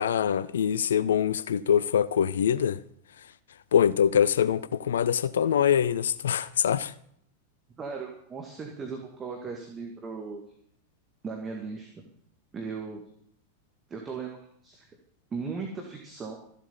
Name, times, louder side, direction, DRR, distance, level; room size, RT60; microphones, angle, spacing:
voice 1, 0.0-2.8 3.7-6.9, left 8 dB, 65° left, 0.5 m, -24 dB
voice 2, 7.8-10.4 11.2-11.9 12.5-13.0 13.9-14.4 14.6-14.9 15.3-16.4, right 4 dB, 20° right, 2.0 m, -37 dB
14.0 x 8.0 x 7.1 m
figure-of-eight pair, 90°, 0 cm